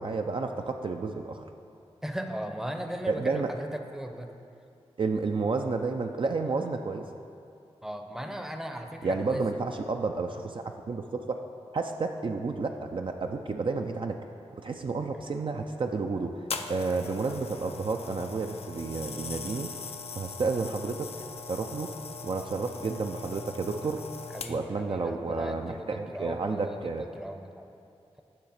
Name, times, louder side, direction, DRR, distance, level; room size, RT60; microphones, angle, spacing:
voice 1, 0.0-1.5 3.1-3.5 5.0-7.1 9.0-11.4 11.7-14.2 14.6-19.7 20.1-21.1 21.5-21.9 22.2-24.0 24.5-27.1, right 4 dB, 50° right, 4 dB, 0.4 m, -31 dB
voice 2, 2.0-4.3 7.8-9.4 24.3-27.7, equal, 5° right, 5 dB, 0.6 m, -37 dB
sound 1, 16.5-24.8 25.6-25.8, left 4 dB, 65° left, 0.4 m, -40 dB
8.5 x 3.2 x 6.4 m, 2.5 s
cardioid pair, 45°, 11 cm